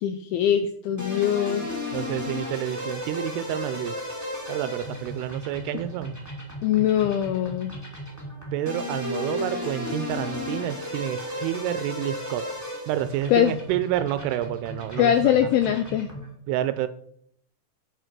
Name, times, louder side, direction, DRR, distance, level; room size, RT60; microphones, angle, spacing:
voice 1, 0.0-1.7 6.6-7.7 13.3-13.6 15.0-16.1, left 10 dB, 85° left, 9 dB, 2.2 m, -22 dB
sound 1, 1.0-16.3, left 1 dB, 5° left, 1.3 m, -34 dB
voice 2, 1.9-3.9 4.5-6.2 8.5-12.4 12.9-15.3 16.5-16.9, right 12 dB, 80° right, 12 dB, 2.5 m, -29 dB
8.1 x 6.8 x 5.9 m, 0.67 s
omnidirectional pair, 5.0 m